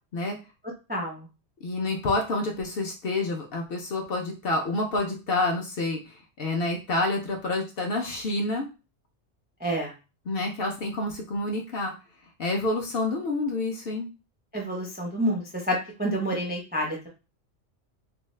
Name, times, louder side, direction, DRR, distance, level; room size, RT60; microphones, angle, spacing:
voice 1, 0.9-1.3 9.6-9.9 14.5-17.1, equal, 15° right, -1 dB, 0.3 m, -28 dB
voice 2, 1.6-8.7 10.3-11.9 12.4-14.1, left 2 dB, 55° left, 1 dB, 0.7 m, -28 dB
2.6 x 2.3 x 3.1 m, 0.30 s
omnidirectional pair, 1.3 m